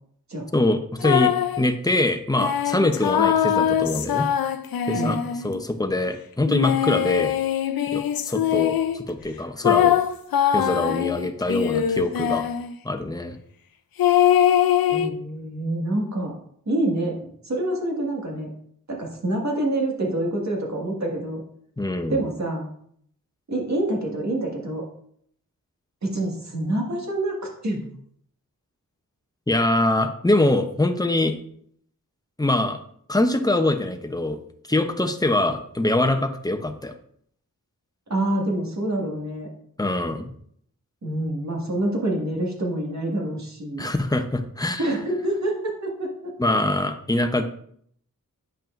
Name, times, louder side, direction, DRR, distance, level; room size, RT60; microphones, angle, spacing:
voice 1, 0.5-4.3 4.9-5.2 5.4-7.3 7.9-9.9 10.5-12.4 12.8-13.4 21.8-22.2 29.5-31.4 32.4-32.8 33.1-34.4 34.7-36.9 39.8-40.3 43.8-44.8 46.4-47.4, left 2 dB, 10° left, 7 dB, 0.7 m, -23 dB
sound 1, 1.0-1.6 2.4-5.6 6.5-9.0 9.6-12.7 14.0-15.1, left 10 dB, 85° left, 0.5 m, -22 dB
voice 2, 14.9-16.3 16.7-18.5 18.9-21.4 22.1-22.7 23.5-24.8 26.0-27.4 27.6-27.9 38.1-39.5 41.0-43.8 44.8-46.1, right 1 dB, 50° right, -1 dB, 1.9 m, -26 dB
8.8 x 5.4 x 2.6 m, 0.65 s
cardioid pair, 60°, 34 cm